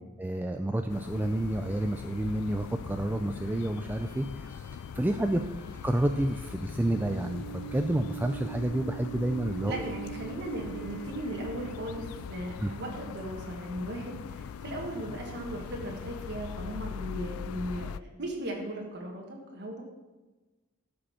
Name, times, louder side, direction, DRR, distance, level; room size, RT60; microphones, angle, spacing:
voice 1, 0.0-4.7 4.9-5.4 5.8-9.8 12.6-12.7, right 1 dB, 10° right, 6 dB, 0.3 m, -30 dB
sound 1, 0.9-18.0, left 7 dB, 80° left, 0.3 m, -41 dB
sound 2, 1.1-12.2, right 7 dB, 60° left, 1.9 m, -45 dB
voice 2, 9.7-19.8, right 1 dB, 55° right, 0 dB, 1.5 m, -37 dB
13.0 x 5.3 x 5.6 m, 1.2 s
head